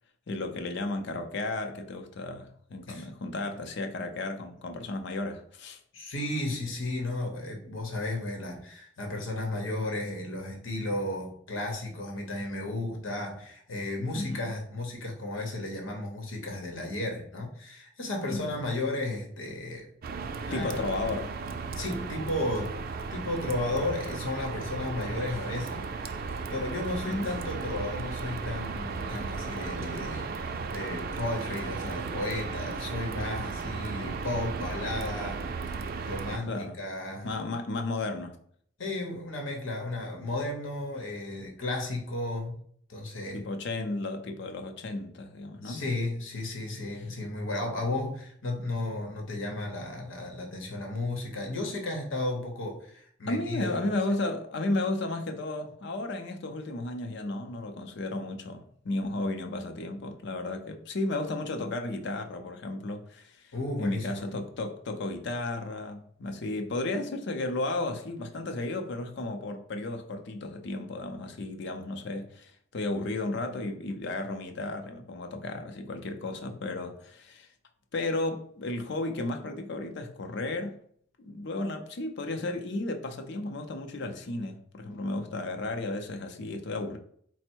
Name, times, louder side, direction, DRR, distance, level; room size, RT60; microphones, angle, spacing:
voice 1, 0.3-5.8 14.1-14.5 18.3-18.6 20.5-21.3 27.0-27.3 33.8-34.2 36.5-36.8 37.2-38.4 43.3-45.8 53.3-63.4 63.8-77.5 77.9-80.8 81.2-87.0, left 2 dB, 60° left, 0.6 m, -33 dB
voice 2, 5.9-19.9 20.5-20.8 21.7-22.7 23.1-35.8 36.0-37.4 38.8-42.6 42.9-43.4 45.6-53.8 63.5-64.3, left 2 dB, 85° left, 1.0 m, -34 dB
sound 1, 20.0-36.4, right 4 dB, 50° right, 0.4 m, -35 dB
4.3 x 2.1 x 4.4 m
head